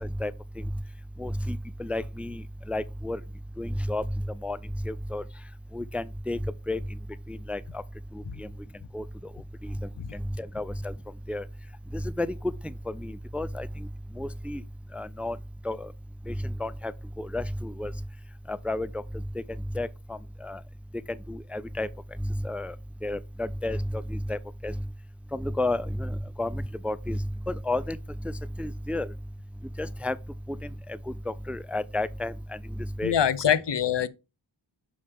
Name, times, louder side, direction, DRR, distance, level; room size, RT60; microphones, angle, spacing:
voice 1, 0.0-0.3 1.2-2.4 2.7-3.2 3.6-4.0 4.4-4.6 4.9-5.2 5.7-6.4 6.7-6.8 7.3-7.6 8.1-8.5 8.9-9.0 9.6-9.7 10.1-10.9 11.3-11.4 11.9-12.3 13.0-13.7 14.2-14.6 14.9-15.4 15.7-15.9 16.3-16.4 16.6-16.9 17.2-17.9 18.5-18.9 19.8-19.9 20.4-20.6 21.3-21.9 22.4-22.7 23.0-24.7 25.3-26.1 26.4-27.2 27.5-28.0 28.6-29.1 29.8-30.1 31.3-32.3 33.0-33.1, left 1 dB, 5° right, 0.3 m, -31 dB
voice 2, 33.0-34.1, left 9 dB, 60° left, 0.6 m, -24 dB
6.5 x 5.4 x 3.4 m
wide cardioid pair, 45°, 47 cm